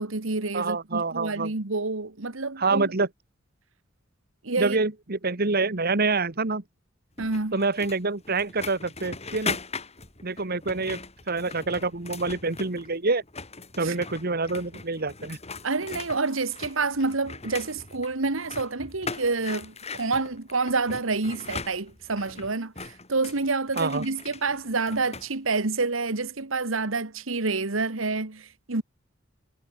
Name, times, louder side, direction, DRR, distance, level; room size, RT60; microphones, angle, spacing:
voice 1, 0.0-2.8 4.4-4.8 7.2-7.6 13.8-14.0 15.6-28.8, right 3 dB, 80° right, 1.7 m, -28 dB
voice 2, 0.5-1.5 2.6-3.1 4.6-6.6 7.5-9.6 10.2-11.0 11.3-13.2 13.8-15.4 23.8-24.0, right 3 dB, 50° right, 1.7 m, -26 dB
sound 1, 7.2-12.9 13.2-25.3, left 4 dB, 35° left, 7.9 m, -39 dB
head